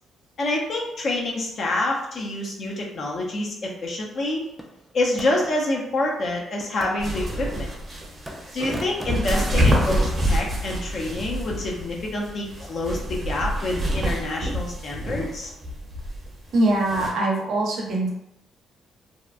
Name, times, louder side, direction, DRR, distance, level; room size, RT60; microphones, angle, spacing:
voice 1, 0.4-4.5 4.9-7.7 8.5-15.5, left 2 dB, 55° left, -2 dB, 0.6 m, -27 dB
sound 1, 4.6-5.6 6.6-8.0 8.2-10.1, equal, 5° right, 0.4 m, -41 dB
sound 2, 7.0-17.1, equal, 40° right, 0.8 m, -27 dB
voice 2, 16.5-18.1, right 2 dB, 70° right, -1 dB, 0.6 m, -22 dB
2.8 x 2.1 x 2.4 m, 0.82 s
cardioid pair, 90°, 0 cm